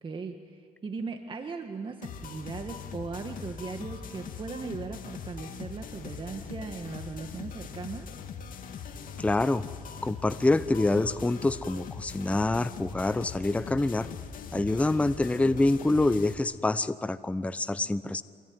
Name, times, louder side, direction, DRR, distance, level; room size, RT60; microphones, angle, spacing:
voice 1, 0.0-8.1, right 4 dB, 30° right, 5 dB, 1.6 m, -38 dB
sound 1, 2.0-16.3, left 6 dB, 55° left, 2.5 m, -41 dB
voice 2, 9.2-9.6 10.0-14.1 14.5-18.2, left 2 dB, 5° left, 13 dB, 0.7 m, -26 dB
25.5 x 23.5 x 9.4 m, 2.1 s
cardioid pair, 110°, 17 cm